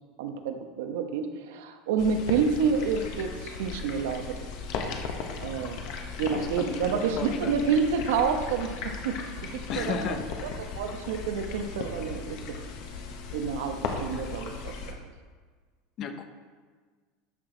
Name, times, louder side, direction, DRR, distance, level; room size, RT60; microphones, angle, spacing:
voice 1, 0.2-4.4 5.4-5.8 6.2-10.2 10.6-12.6 13.3-15.0, right 6 dB, 85° right, 6 dB, 1.0 m, -29 dB
sound 1, 2.0-14.9, left 5 dB, 50° left, 1.1 m, -37 dB
voice 2, 6.6-7.6 9.7-10.3 16.0-16.2, left 6 dB, 30° left, 8 dB, 0.7 m, -33 dB
12.0 x 6.2 x 3.9 m, 1.5 s
supercardioid pair, 170°, 0 cm